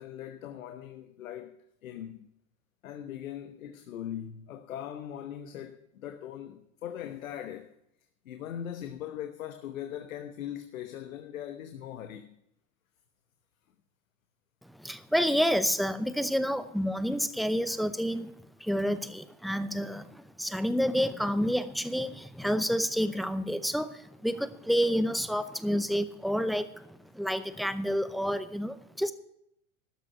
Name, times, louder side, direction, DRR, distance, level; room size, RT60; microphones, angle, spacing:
voice 1, 0.0-1.6 1.8-2.3 2.8-7.7 8.2-12.4, left 10 dB, 85° left, 1.2 m, -40 dB
voice 2, 14.7-18.3 18.6-29.1, equal, ahead, 0.6 m, -29 dB
13.0 x 6.3 x 9.0 m
hypercardioid pair, 115°, 40 cm